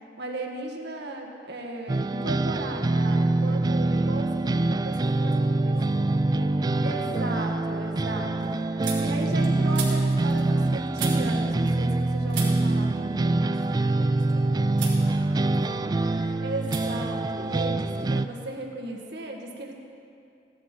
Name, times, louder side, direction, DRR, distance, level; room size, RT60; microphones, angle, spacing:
voice 1, 0.2-5.1 6.8-8.5 9.0-13.4 16.4-19.7, right 2 dB, 65° right, 1 dB, 1.7 m, -35 dB
sound 1, 1.9-18.3, right 2 dB, 20° right, 0.3 m, -25 dB
voice 2, 4.8-7.7 8.9-9.6 13.3-16.4, left 1 dB, 55° left, -2 dB, 2.3 m, -47 dB
sound 2, 6.1-6.6 7.0-12.0 12.3-14.3 14.7-15.0 15.4-16.1 16.6-16.8 17.1-18.2, right 6 dB, 85° right, 3.4 m, -40 dB
17.0 x 11.5 x 4.4 m, 2.5 s
head